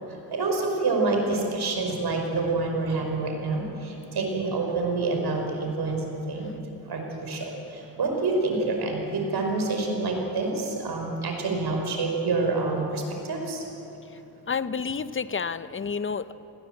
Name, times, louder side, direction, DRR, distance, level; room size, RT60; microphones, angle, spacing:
voice 1, 0.3-6.5 6.9-13.6, right 3 dB, 60° right, 2 dB, 5.0 m, -27 dB
voice 2, 14.5-16.3, left 5 dB, 30° left, 14 dB, 0.8 m, -30 dB
20.0 x 16.5 x 8.0 m, 2.9 s
cardioid pair, 60°, 42 cm